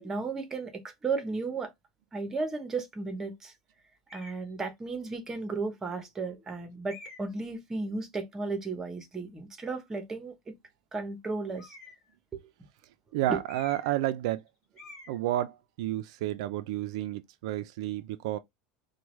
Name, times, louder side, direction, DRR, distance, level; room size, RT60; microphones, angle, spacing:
voice 1, 0.0-1.7 2.1-3.5 4.1-10.5 10.9-11.7 12.3-12.4 13.3-13.4, right 3 dB, 15° right, 0.8 m, -34 dB
sound 1, 4.1-4.5 5.3-5.4 6.9-7.4 11.5-12.1 13.4-14.0 14.3-14.5 14.8-15.2, left 2 dB, 20° left, 2.5 m, -48 dB
voice 2, 13.1-14.4 15.1-18.4, right 14 dB, 75° right, 0.3 m, -31 dB
4.6 x 2.2 x 3.1 m
supercardioid pair, 165°, 3 cm